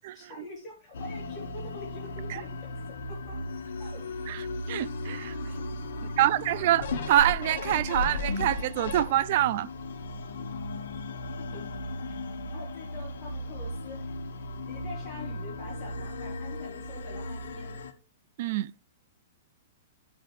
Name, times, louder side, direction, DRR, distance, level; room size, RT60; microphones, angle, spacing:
voice 1, 0.1-2.5 3.1-3.4 3.8-4.0 5.5-6.8 11.5-11.6 12.1-12.2 12.5-14.2 14.7-17.8, left 3 dB, 15° left, 3.8 m, -45 dB
sound 1, 0.9-17.9, left 2 dB, 85° left, 1.3 m, -37 dB
voice 2, 4.7-5.4 6.2-9.7 18.4-18.7, right 13 dB, 40° right, 0.3 m, -25 dB
sound 2, 6.8-9.5 10.0-10.1, left 4 dB, 55° left, 1.5 m, -33 dB
11.5 x 5.7 x 3.2 m
hypercardioid pair, 175°, 0 cm